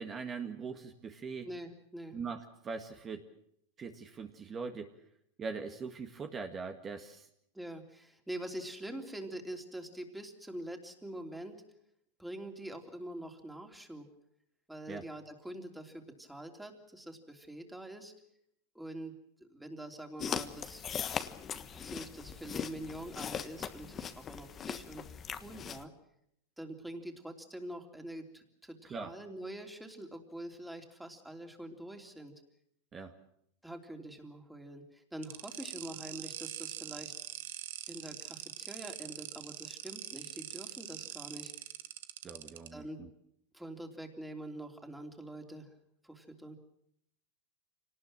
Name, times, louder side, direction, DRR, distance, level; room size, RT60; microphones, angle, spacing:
voice 1, 0.0-1.5 2.1-3.3 3.8-4.9 5.4-7.3 14.9-15.0 28.9-29.1 32.9-33.1 42.2-43.1, right 5 dB, 25° right, 5 dB, 1.8 m, -41 dB
voice 2, 1.4-2.2 7.5-11.6 12.2-14.1 14.7-18.1 18.7-20.9 21.7-25.0 25.4-25.9 26.6-32.3 33.6-37.1 37.9-41.5 42.7-43.0 43.5-45.7 46.0-46.6, right 1 dB, 5° right, 4 dB, 3.3 m, -45 dB
sound 1, 20.2-25.8, left 8 dB, 25° left, 1.3 m, -40 dB
sound 2, 35.2-42.7, right 13 dB, 75° right, 1.3 m, -43 dB
25.5 x 19.0 x 7.6 m, 0.74 s
supercardioid pair, 130°, 0 cm